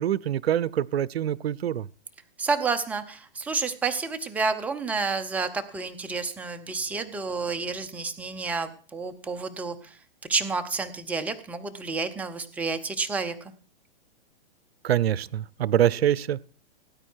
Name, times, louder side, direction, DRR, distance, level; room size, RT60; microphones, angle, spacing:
voice 1, 0.0-1.9 14.8-16.4, right 11 dB, 85° right, 23 dB, 0.6 m, -25 dB
voice 2, 2.4-9.8 10.3-13.3, right 4 dB, 5° right, 7 dB, 0.7 m, -30 dB
17.5 x 9.1 x 4.6 m, 0.40 s
hypercardioid pair, 145°, 30 cm